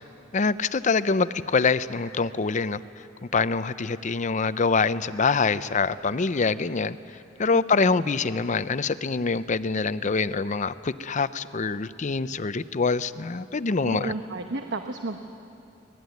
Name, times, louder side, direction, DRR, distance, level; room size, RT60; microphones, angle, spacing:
voice 1, 0.3-2.8 3.3-7.0 7.4-14.1, left 4 dB, 40° left, 14 dB, 0.6 m, -25 dB
voice 2, 13.8-15.2, right 2 dB, 65° right, 5 dB, 1.1 m, -32 dB
24.5 x 19.0 x 9.4 m, 2.6 s
head